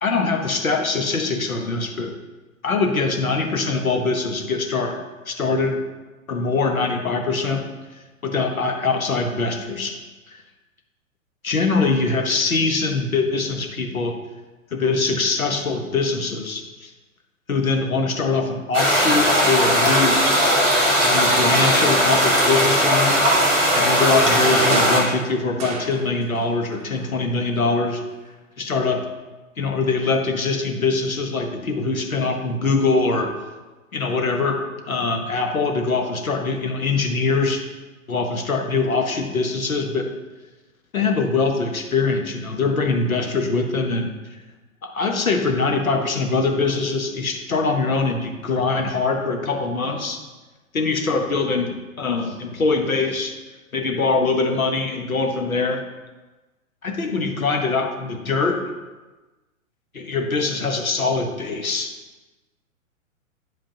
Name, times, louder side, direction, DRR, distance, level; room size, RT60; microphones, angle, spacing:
voice 1, 0.0-2.1 2.6-5.0 5.2-5.8 6.3-7.7 7.9-10.0 10.3-10.4 11.4-14.2 14.7-16.9 17.5-20.3 21.0-28.0 28.6-29.1 29.6-33.3 33.9-37.6 38.1-40.1 40.9-44.4 44.8-50.2 50.7-53.4 53.7-55.8 56.8-58.7 59.9-61.9, left 3 dB, 80° left, 3 dB, 1.1 m, -23 dB
sound 1, 18.7-25.0, equal, ahead, 0.3 m, -18 dB
sound 2, 24.0-26.5 26.7-27.8 28.1-28.2, right 4 dB, 15° right, 0.8 m, -33 dB
9.3 x 5.0 x 2.9 m, 1.2 s
figure-of-eight pair, 115°, 41 cm